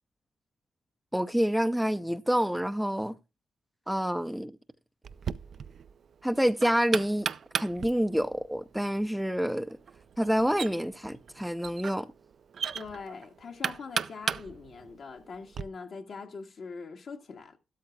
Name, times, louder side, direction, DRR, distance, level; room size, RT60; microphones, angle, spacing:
voice 1, 1.1-3.1 3.9-4.6 6.2-7.3 7.6-9.8 10.2-12.1, equal, 5° right, 0.5 m, -27 dB
Knock, 5.0-15.6, right 7 dB, 65° right, 0.5 m, -37 dB
voice 2, 12.7-17.6, left 4 dB, 65° left, 1.7 m, -42 dB
12.5 x 12.5 x 2.3 m
cardioid pair, 70°, 0 cm